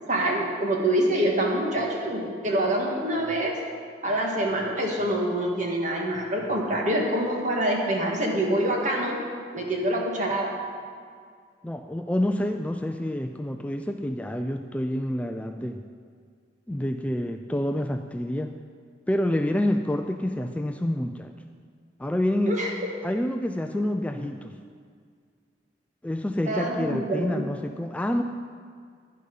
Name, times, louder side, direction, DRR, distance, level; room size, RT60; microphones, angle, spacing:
voice 1, 0.1-3.5 4.0-9.2 9.5-10.5 22.5-22.7 26.5-27.5, right 1 dB, 45° right, -1 dB, 1.9 m, -25 dB
voice 2, 11.6-15.8 16.7-18.5 19.1-21.3 22.0-22.6 23.0-24.6 26.0-28.2, left 1 dB, 10° left, 6 dB, 0.3 m, -28 dB
10.5 x 10.5 x 5.4 m, 2.1 s
head